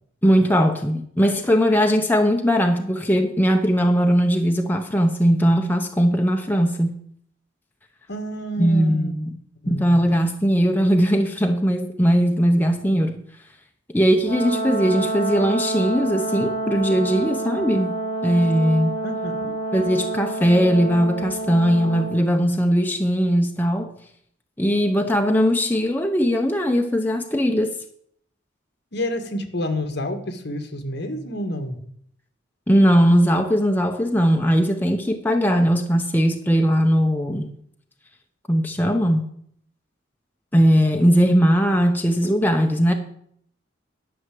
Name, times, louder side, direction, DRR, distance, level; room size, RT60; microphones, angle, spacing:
voice 1, 0.2-7.0 8.6-9.3 9.7-13.2 13.9-17.9 18.2-19.0 19.7-23.9 24.6-27.8 32.7-37.5 38.5-39.3 40.5-42.9, equal, 10° left, 3 dB, 0.7 m, -19 dB
voice 2, 8.1-9.1 9.6-10.0 19.0-19.6 28.9-31.8, left 1 dB, 60° left, 7 dB, 1.5 m, -29 dB
Brass instrument, 14.2-22.2, right 2 dB, 30° left, 3.6 m, -28 dB
11.0 x 5.8 x 7.6 m, 0.66 s
head